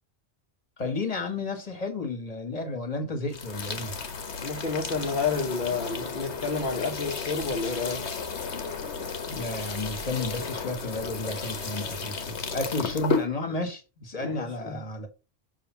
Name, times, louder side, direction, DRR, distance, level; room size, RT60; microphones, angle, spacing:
voice 1, 0.8-3.9 9.3-15.1, left 2 dB, 35° left, 1.6 m, -32 dB
sound 1, 3.3-13.3, left 5 dB, 75° left, 1.4 m, -33 dB
voice 2, 4.4-8.1 14.2-14.8, left 4 dB, 50° left, 1.2 m, -30 dB
6.8 x 3.5 x 5.7 m
omnidirectional pair, 1.1 m